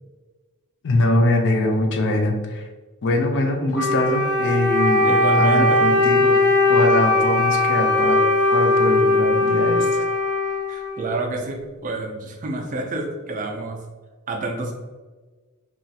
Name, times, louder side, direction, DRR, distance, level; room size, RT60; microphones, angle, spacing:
voice 1, 0.8-2.7 3.0-6.4 6.7-8.2 8.5-10.0, left 1 dB, 55° left, 4 dB, 0.4 m, -22 dB
Wind instrument woodwind instrument, 3.7-11.3, left 2 dB, 5° right, 0.8 m, -19 dB
voice 2, 5.0-5.8 10.7-13.8 14.3-14.7, right 2 dB, 35° right, 2 dB, 0.4 m, -27 dB
3.0 x 2.4 x 2.7 m, 1.3 s
head